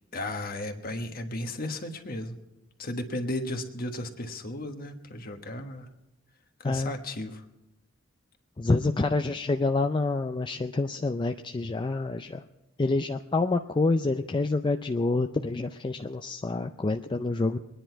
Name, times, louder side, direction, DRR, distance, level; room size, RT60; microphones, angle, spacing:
voice 1, 0.1-2.4 2.8-5.9 6.6-7.4, left 1 dB, 45° left, 6 dB, 1.4 m, -34 dB
voice 2, 8.6-12.4 12.8-17.6, left 3 dB, 25° left, 6 dB, 0.4 m, -27 dB
23.5 x 10.0 x 4.6 m, 0.96 s
head